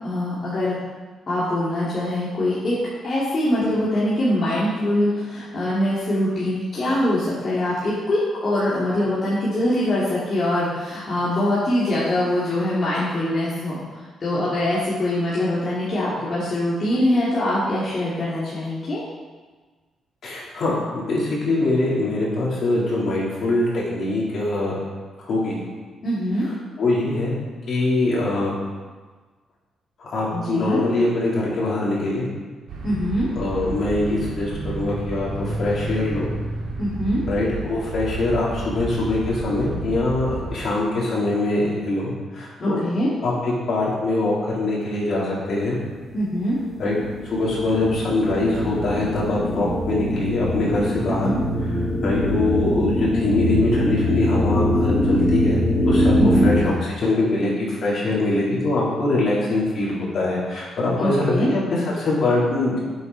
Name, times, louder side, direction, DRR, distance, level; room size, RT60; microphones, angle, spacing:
voice 1, 0.0-0.8 1.3-2.8 3.0-13.8 14.2-19.0 26.0-26.5 30.3-30.8 32.8-33.3 36.8-37.2 42.6-43.1 46.1-46.6 51.0-51.4 56.2-56.5 61.0-61.5, left 1 dB, 35° left, -9 dB, 2.5 m, -23 dB
voice 2, 20.2-24.8 25.2-25.6 26.8-27.3 27.7-28.5 30.0-32.3 33.4-36.3 37.3-42.8 43.2-45.8 46.8-47.0 47.3-51.3 52.0-62.8, left 2 dB, 55° left, -6 dB, 3.6 m, -23 dB
sound 1, 32.7-40.6, right 2 dB, 80° right, 2.7 m, -31 dB
sound 2, 46.5-56.6, left 1 dB, 5° left, 1.4 m, -23 dB
11.5 x 7.9 x 4.2 m, 1.4 s
cardioid pair, 140°, 0 cm